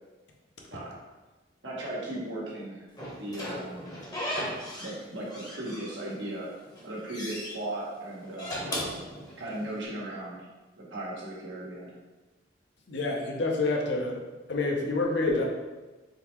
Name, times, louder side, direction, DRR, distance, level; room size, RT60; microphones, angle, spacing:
voice 1, 1.6-2.9 3.2-3.9 4.8-6.5 6.8-8.6 9.4-10.5 10.8-11.9, right 1 dB, 85° right, -5 dB, 1.1 m, -37 dB
Slam / Squeak, 3.0-5.0 5.3-6.3 6.7-7.5 8.2-9.8, equal, 20° left, 0.9 m, -36 dB
voice 2, 12.9-14.2 14.5-15.4, left 3 dB, 65° left, 0 dB, 0.7 m, -27 dB
3.8 x 3.2 x 3.0 m, 1.2 s
head